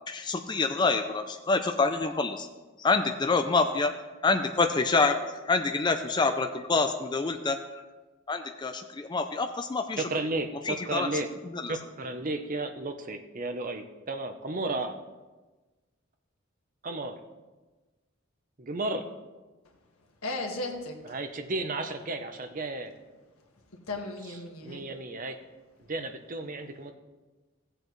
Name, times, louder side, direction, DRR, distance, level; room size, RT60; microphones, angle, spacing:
voice 1, 0.1-2.5 2.8-3.9 4.2-5.2 5.5-7.6 8.3-10.0 10.7-11.1 11.5-11.7, left 3 dB, 20° left, 6 dB, 0.4 m, -26 dB
voice 2, 10.0-11.3 11.7-14.9 16.8-17.2 18.6-19.0 21.1-22.9 24.6-25.4 25.9-26.9, right 2 dB, 40° right, 7 dB, 0.7 m, -33 dB
voice 3, 20.2-21.2 23.9-24.8, left 2 dB, 90° left, 1 dB, 1.6 m, -35 dB
16.5 x 7.8 x 3.1 m, 1.2 s
head